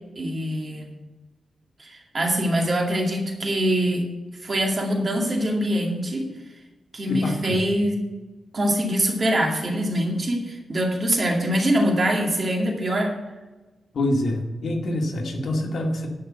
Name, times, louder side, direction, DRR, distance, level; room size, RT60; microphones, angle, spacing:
voice 1, 0.2-0.9 1.8-4.1 4.4-6.3 6.9-8.0 8.5-13.2, equal, 35° right, 1 dB, 2.2 m, -23 dB
voice 2, 7.1-7.6 13.9-16.1, left 1 dB, 65° left, 1 dB, 2.0 m, -26 dB
11.0 x 5.6 x 8.8 m, 1.2 s
wide cardioid pair, 130°, 0 cm